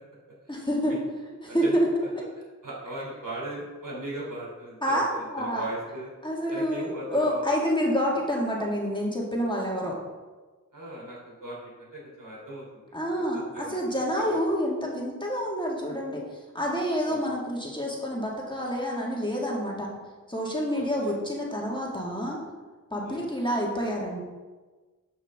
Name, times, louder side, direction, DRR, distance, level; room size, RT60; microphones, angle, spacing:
voice 1, 0.5-1.0 1.4-1.9 4.8-5.7 6.2-10.0 12.9-19.9 20.3-22.4 22.9-24.2, equal, 15° left, -3 dB, 2.0 m, -28 dB
voice 2, 1.5-1.8 2.6-6.1 6.5-7.5 10.7-12.8 13.3-14.4 17.1-17.2 20.7-21.2 23.0-23.2, right 1 dB, 70° right, -4 dB, 2.9 m, -38 dB
11.5 x 5.6 x 3.6 m, 1.3 s
wide cardioid pair, 55°, 33 cm